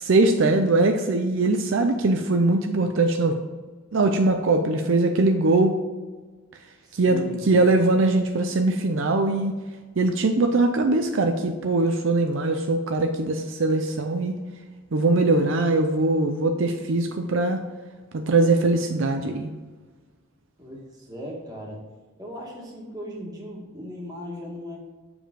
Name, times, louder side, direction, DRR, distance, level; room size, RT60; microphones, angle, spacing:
voice 1, 0.0-3.4 3.9-5.8 6.9-9.5 10.0-14.3 14.9-17.6 18.1-19.5, right 2 dB, 65° right, 5 dB, 0.5 m, -21 dB
voice 2, 6.8-7.4 20.6-21.8 22.2-24.8, equal, 20° right, -2 dB, 1.6 m, -37 dB
7.1 x 4.9 x 3.7 m, 1.4 s
head